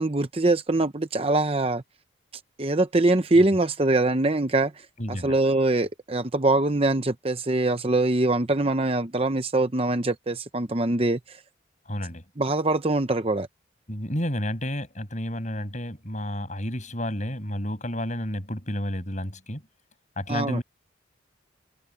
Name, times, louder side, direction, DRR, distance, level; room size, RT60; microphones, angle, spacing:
voice 1, 0.0-1.8 2.6-4.7 5.1-11.4 12.4-13.5 20.3-20.6, right 2 dB, 30° right, 0.8 m, -23 dB
voice 2, 5.0-5.3 11.8-12.2 13.9-19.6 20.2-20.6, left 1 dB, 40° left, 6.8 m, -31 dB
head